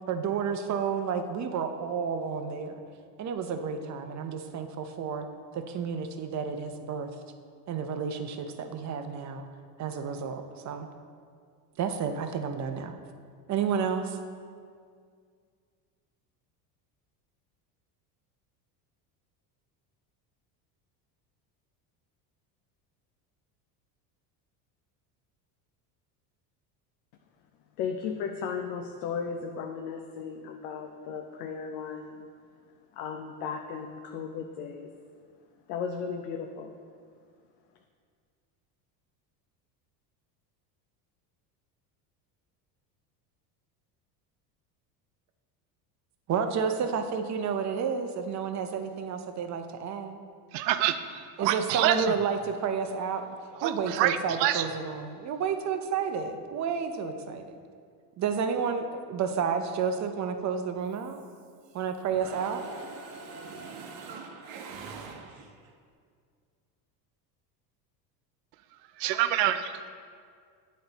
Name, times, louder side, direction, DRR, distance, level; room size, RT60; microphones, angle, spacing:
voice 1, 0.1-2.8 3.2-5.2 5.5-7.1 7.7-9.5 9.8-10.9 11.8-12.9 13.5-14.2 46.3-50.2 51.4-53.2 53.6-57.6 58.2-61.2 61.7-62.6, right 6 dB, 35° right, 7 dB, 0.6 m, -31 dB
voice 2, 27.8-32.3 32.9-34.9 35.7-36.8, left 6 dB, 75° left, 4 dB, 0.6 m, -35 dB
voice 3, 50.5-52.1 53.6-54.7 69.0-69.9, right 11 dB, 85° right, 10 dB, 0.6 m, -27 dB
Mechanisms, 60.9-61.8 62.1-65.7, right 4 dB, 60° right, 0.9 m, -44 dB
8.7 x 4.2 x 4.0 m, 2.1 s
supercardioid pair, 95°, 49 cm